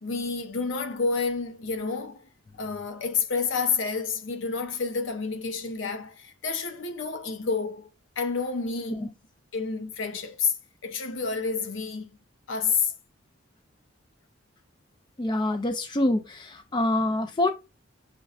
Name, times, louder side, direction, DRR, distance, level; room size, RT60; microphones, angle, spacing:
voice 1, 0.0-2.3 2.6-7.9 8.2-9.1 9.5-10.5 10.8-12.1 12.5-12.9, left 5 dB, 70° left, 0.6 m, -29 dB
voice 2, 15.2-17.5, left 1 dB, 20° left, 0.4 m, -25 dB
6.5 x 2.2 x 2.4 m
head